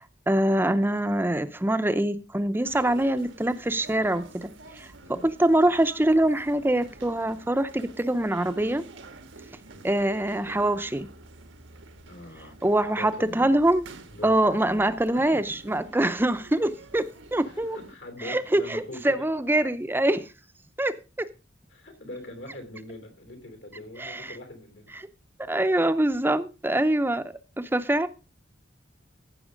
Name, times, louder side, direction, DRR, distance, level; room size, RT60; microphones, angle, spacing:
voice 1, 0.0-4.9 5.2-8.8 9.8-11.1 12.6-13.8 14.2-17.8 18.2-20.3 20.8-20.9 24.0-24.3 25.5-28.1, right 1 dB, 10° right, 0.6 m, -24 dB
sound 1, 2.6-17.9, right 3 dB, 85° right, 1.4 m, -48 dB
voice 2, 12.1-13.6 14.1-15.9 17.4-19.3 21.7-24.9, left 1 dB, 75° left, 2.9 m, -42 dB
15.0 x 6.0 x 5.1 m
head